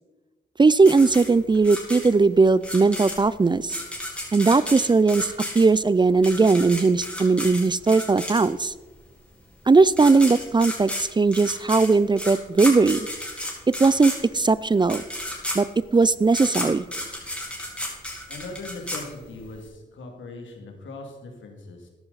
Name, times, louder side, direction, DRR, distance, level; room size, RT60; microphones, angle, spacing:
voice 1, 0.6-3.8 4.3-8.7 9.7-13.0 13.7-15.0 15.5-15.7 15.9-16.9, right 4 dB, 25° right, 18 dB, 0.4 m, -19 dB
sound 1, 0.8-8.8 9.6-9.7 9.9-19.6, left 1 dB, 5° left, 4.0 m, -33 dB
voice 2, 18.3-21.9, left 3 dB, 85° left, 3 dB, 2.4 m, -39 dB
14.0 x 11.0 x 4.1 m, 1.2 s
cardioid pair, 70°, 19 cm